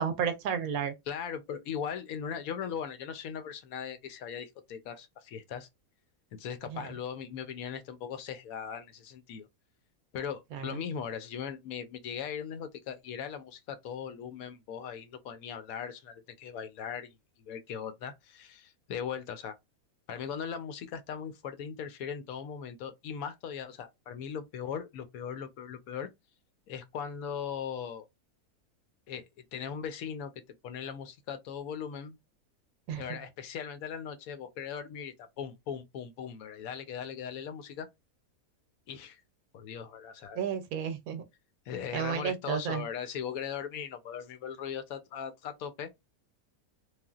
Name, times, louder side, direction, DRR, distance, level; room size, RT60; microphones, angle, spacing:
voice 1, 0.0-0.9 6.7-6.8 10.5-10.8 32.9-33.2 40.3-41.2 41.9-42.8, right 7 dB, 75° right, 1.1 m, -32 dB
voice 2, 1.1-5.7 6.3-9.5 10.1-19.6 20.1-26.1 26.7-28.1 29.1-32.2 33.0-37.9 38.9-39.2 39.5-40.4 41.7-45.9, left 7 dB, 75° left, 1.1 m, -39 dB
3.3 x 2.4 x 2.4 m
omnidirectional pair, 1.6 m